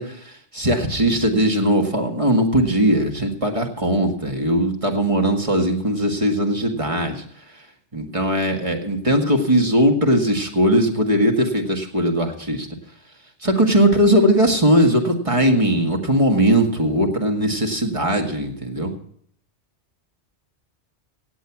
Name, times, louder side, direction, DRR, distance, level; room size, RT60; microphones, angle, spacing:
voice 1, 0.0-7.2 7.9-12.7 13.4-18.9, right 1 dB, 30° right, 2 dB, 1.9 m, -19 dB
17.5 x 8.2 x 6.0 m, 0.64 s
omnidirectional pair, 1.2 m